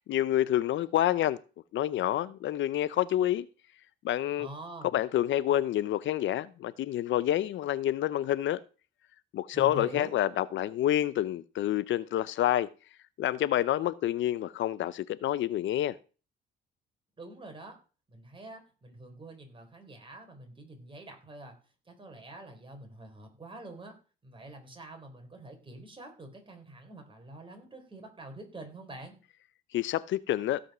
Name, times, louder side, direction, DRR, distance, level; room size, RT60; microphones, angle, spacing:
voice 1, 0.1-1.4 1.7-3.5 4.0-4.5 4.9-8.6 9.3-12.7 13.2-16.0 29.7-30.6, left 12 dB, 70° left, 0.6 m, -28 dB
voice 2, 4.4-4.9 9.5-10.1 17.2-17.8 18.1-21.6 21.9-23.9 24.2-29.1, right 1 dB, 25° right, 4.0 m, -46 dB
16.0 x 5.3 x 6.1 m
cardioid pair, 90°, 20 cm